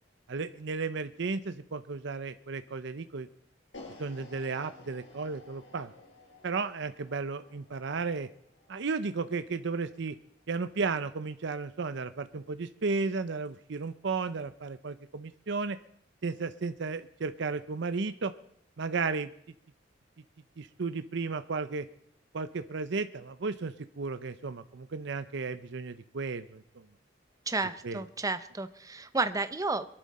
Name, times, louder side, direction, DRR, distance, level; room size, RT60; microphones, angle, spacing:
voice 1, 0.3-3.3 4.0-5.9 6.4-8.3 8.7-10.1 10.5-15.8 16.2-18.3 18.8-19.3 20.6-21.9 22.3-26.6 27.8-28.0, right 4 dB, 65° right, 11 dB, 0.6 m, -34 dB
sound 1, 3.7-9.9, left 2 dB, 80° left, 4.9 m, -53 dB
voice 2, 27.5-29.9, right 3 dB, 20° right, 11 dB, 0.8 m, -31 dB
23.0 x 11.0 x 4.2 m, 0.70 s
head